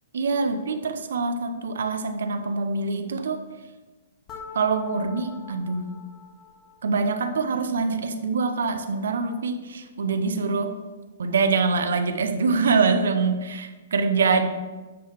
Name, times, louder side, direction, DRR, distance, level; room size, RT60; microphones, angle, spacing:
voice 1, 0.1-3.4 4.5-6.0 6.8-10.8 11.2-14.5, right 4 dB, 85° right, 8 dB, 0.8 m, -24 dB
sound 1, 4.3-7.2, left 5 dB, 20° left, 0.8 m, -44 dB
9.5 x 3.9 x 5.6 m, 1.2 s
hypercardioid pair, 155°, 0 cm